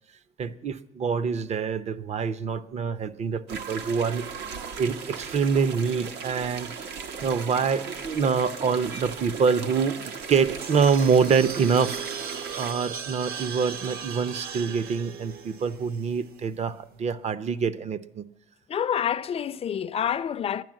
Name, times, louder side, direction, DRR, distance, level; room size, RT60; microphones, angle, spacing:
voice 1, 0.4-4.3 4.8-6.7 7.2-18.2, right 6 dB, 40° right, 0.7 m, -25 dB
sound 1, 3.5-12.7, right 6 dB, 80° right, 1.3 m, -37 dB
sound 2, 10.2-16.5, right 6 dB, 60° right, 1.1 m, -38 dB
voice 2, 18.7-20.6, left 8 dB, 35° left, 0.5 m, -27 dB
11.0 x 10.0 x 7.6 m
cardioid pair, 110°, 17 cm